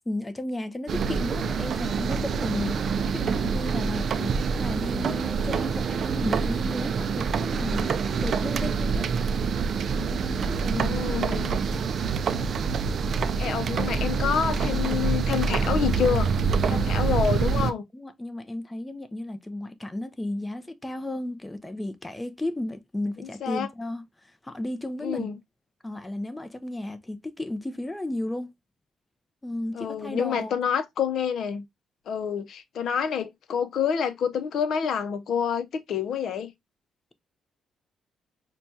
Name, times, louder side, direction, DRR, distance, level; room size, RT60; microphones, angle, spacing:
voice 1, 0.0-4.3 4.6-7.9 8.2-9.1 9.9-10.9 11.3-11.9 16.6-16.9 17.9-25.3 25.8-28.5 29.4-30.8, left 1 dB, 10° left, 0.5 m, -34 dB
sound 1, 0.9-17.7, right 5 dB, 55° right, 0.4 m, -26 dB
voice 2, 10.6-11.5 13.4-16.3 16.7-17.8 23.2-23.7 25.0-25.4 29.7-31.6 32.1-36.5, left 7 dB, 70° left, 0.6 m, -28 dB
5.8 x 2.3 x 2.7 m
cardioid pair, 105°, 0 cm